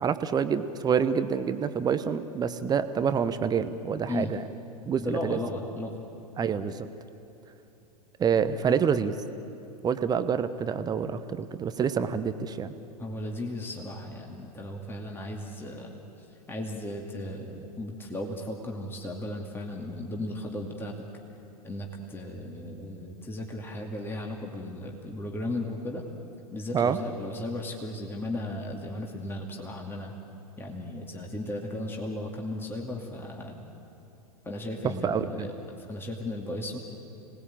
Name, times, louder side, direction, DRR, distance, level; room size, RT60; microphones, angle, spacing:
voice 1, 0.0-4.4 4.9-5.4 6.4-6.9 8.2-9.1 9.8-12.7 26.7-27.0 35.0-35.5, right 7 dB, 20° right, 11 dB, 1.0 m, -27 dB
voice 2, 5.0-5.9 13.0-16.0 16.5-20.9 21.6-26.0 26.5-30.2 30.6-33.7 34.4-35.5 35.8-36.8, left 1 dB, 10° left, 0 dB, 2.4 m, -35 dB
27.0 x 19.5 x 8.9 m, 2.8 s
figure-of-eight pair, 95°, 20 cm